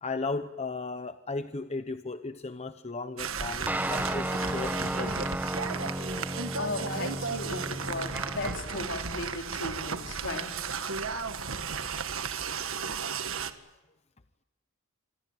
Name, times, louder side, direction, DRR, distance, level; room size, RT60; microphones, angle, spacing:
voice 1, 0.0-5.3, left 3 dB, 30° left, 10 dB, 0.9 m, -36 dB
sound 1, 3.2-13.5, right 5 dB, 70° right, 1.7 m, -34 dB
sound 2, 3.7-8.8, right 1 dB, 10° right, 1.2 m, -34 dB
voice 2, 6.6-10.5, left 2 dB, 60° left, 3 dB, 4.2 m, -36 dB
27.0 x 21.5 x 9.0 m, 1.1 s
head